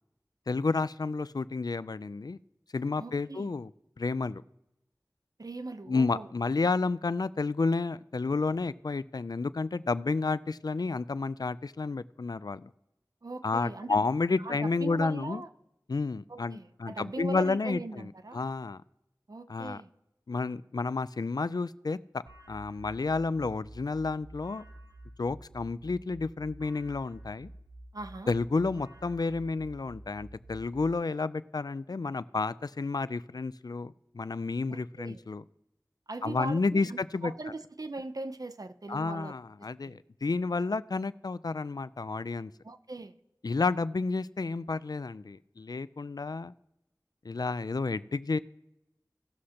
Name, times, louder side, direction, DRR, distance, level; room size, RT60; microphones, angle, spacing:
voice 1, 0.5-2.4 2.7-3.7 4.0-4.4 5.9-12.7 13.4-15.4 15.9-18.8 19.5-19.8 20.3-22.2 22.5-24.7 25.2-27.5 28.3-35.4 36.2-37.3 38.9-42.5 43.4-46.5 47.2-48.4, left 3 dB, 65° left, 16 dB, 0.4 m, -31 dB
voice 2, 3.0-3.5 5.4-6.3 13.2-14.0 14.4-15.5 16.3-18.4 19.3-19.9 27.9-28.3 34.7-35.2 36.1-39.3 39.8-40.0 42.6-43.1, right 2 dB, 55° right, 9 dB, 0.7 m, -40 dB
sound 1, 22.3-30.9, right 1 dB, 75° right, 3.3 m, -50 dB
18.0 x 6.3 x 2.9 m, 0.88 s
wide cardioid pair, 40°, 7 cm